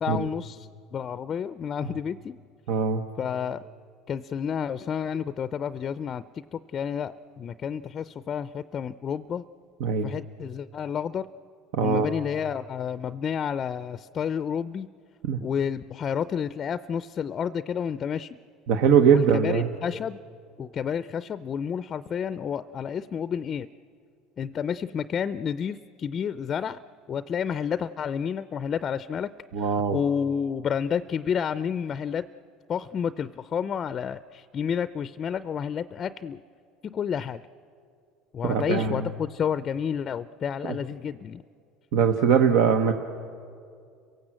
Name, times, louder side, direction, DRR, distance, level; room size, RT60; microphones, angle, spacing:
voice 1, 0.0-2.3 3.2-3.6 4.1-9.4 10.0-11.3 11.8-14.9 15.4-18.4 19.1-20.2 20.6-23.7 24.4-26.8 27.1-29.3 29.6-32.3 32.7-36.4 36.8-37.4 38.3-41.4, left 7 dB, 40° left, 14 dB, 0.5 m, -30 dB
voice 2, 2.7-3.0 9.8-10.1 11.7-12.1 15.2-15.4 18.7-19.7 29.5-30.0 38.5-39.1 40.6-40.7 41.9-42.9, right 7 dB, 75° right, 7 dB, 1.0 m, -21 dB
30.0 x 17.5 x 7.6 m, 2.3 s
supercardioid pair, 100°, 0 cm